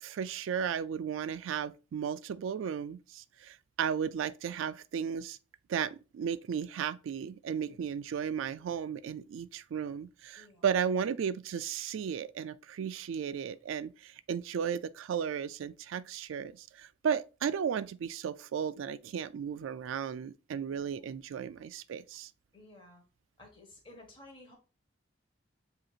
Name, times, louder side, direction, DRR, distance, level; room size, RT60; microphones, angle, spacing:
voice 1, 0.0-5.4 5.7-22.3, right 7 dB, 85° right, 0.3 m, -35 dB
voice 2, 20.7-21.0 22.5-23.0 23.4-24.6, left 2 dB, 25° left, 1.4 m, -54 dB
7.6 x 2.8 x 2.4 m
head